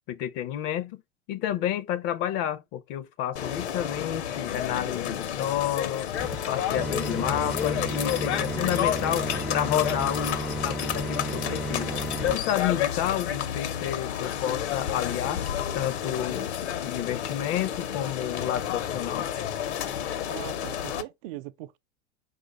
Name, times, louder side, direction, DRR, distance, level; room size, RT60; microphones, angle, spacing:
voice 1, 0.1-1.0 1.3-6.1 6.5-11.9 12.3-15.4 15.7-19.3, left 11 dB, 45° left, 0.6 m, -30 dB
sound 1, 3.4-21.0, left 10 dB, 70° left, 0.9 m, -30 dB
sound 2, 6.2-12.4, right 2 dB, ahead, 0.4 m, -34 dB
voice 2, 20.2-21.8, right 16 dB, 55° right, 0.5 m, -40 dB
4.9 x 2.5 x 3.7 m
hypercardioid pair, 90°, 35 cm